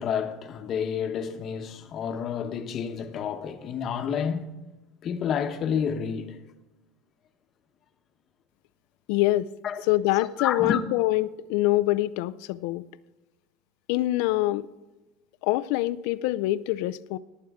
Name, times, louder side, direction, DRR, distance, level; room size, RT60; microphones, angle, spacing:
voice 1, 0.0-4.6 5.0-6.4 9.6-9.8 10.1-10.8, left 7 dB, 40° left, 1.1 m, -30 dB
voice 2, 9.1-9.5 9.9-12.9 13.9-14.7 15.4-17.2, left 16 dB, 70° left, 0.5 m, -25 dB
19.0 x 9.1 x 3.6 m
supercardioid pair, 135°, 0 cm